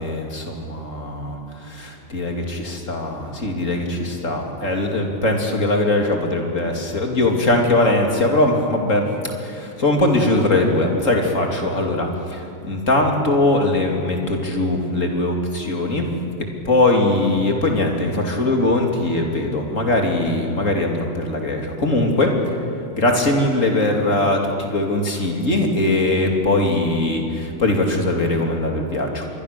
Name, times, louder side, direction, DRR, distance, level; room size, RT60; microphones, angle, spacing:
voice 1, 0.0-9.1 9.4-16.1 16.6-22.3 22.9-29.2, left 2 dB, 35° left, 2 dB, 3.1 m, -21 dB
26.0 x 22.0 x 6.8 m, 2.8 s
omnidirectional pair, 2.3 m